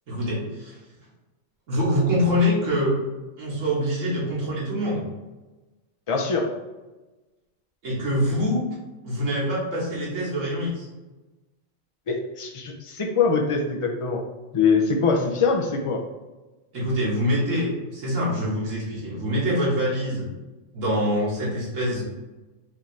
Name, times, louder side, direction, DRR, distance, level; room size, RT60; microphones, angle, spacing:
voice 1, 0.1-0.8 1.7-3.0 3.4-5.0 7.8-8.7 9.0-10.9 16.7-20.3 20.7-22.0, equal, 85° right, -7 dB, 1.8 m, -25 dB
voice 2, 6.1-6.5 12.1-14.2 14.5-16.0, left 5 dB, 40° left, 2 dB, 0.4 m, -23 dB
5.6 x 2.6 x 3.2 m, 1.1 s
omnidirectional pair, 1.3 m